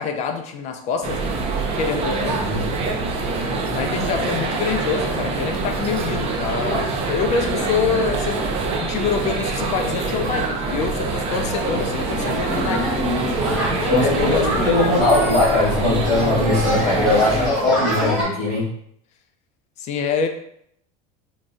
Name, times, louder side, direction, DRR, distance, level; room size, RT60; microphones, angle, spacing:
voice 1, 0.0-1.4 1.7-2.5 3.7-12.9 13.8-14.8 19.8-20.3, left 6 dB, 35° left, 6 dB, 0.4 m, -26 dB
sound 1, 1.0-17.5, right 3 dB, 30° right, 0.5 m, -25 dB
sound 2, 11.6-18.2, equal, 5° right, 1.1 m, -26 dB
voice 2, 13.5-18.7, left 2 dB, 55° left, -11 dB, 1.3 m, -20 dB
3.8 x 2.2 x 2.5 m, 0.70 s
supercardioid pair, 145°, 19 cm